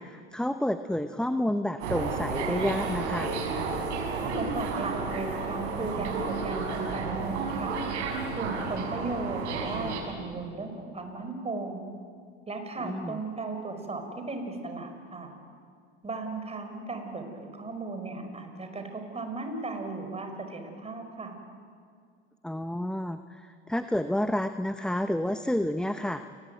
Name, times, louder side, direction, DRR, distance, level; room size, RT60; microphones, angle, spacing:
voice 1, 0.0-3.3 12.8-13.2 22.4-26.3, left 1 dB, ahead, 9 dB, 0.8 m, -30 dB
sound 1, 1.8-10.0, right 4 dB, 85° right, 5.4 m, -32 dB
voice 2, 4.2-7.8 8.3-11.8 12.5-15.3 16.0-21.4, right 3 dB, 20° right, 5 dB, 5.3 m, -36 dB
28.5 x 20.5 x 9.3 m, 2.1 s
hypercardioid pair, 95°, 34 cm